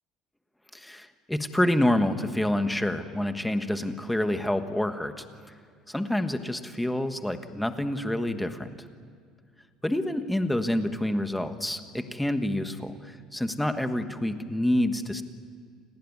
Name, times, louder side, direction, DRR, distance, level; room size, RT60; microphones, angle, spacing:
voice 1, 0.7-5.2 5.9-8.7 9.8-15.2, left 1 dB, 5° left, 8 dB, 1.4 m, -27 dB
28.5 x 19.5 x 9.7 m, 2.2 s
cardioid pair, 145°, 0 cm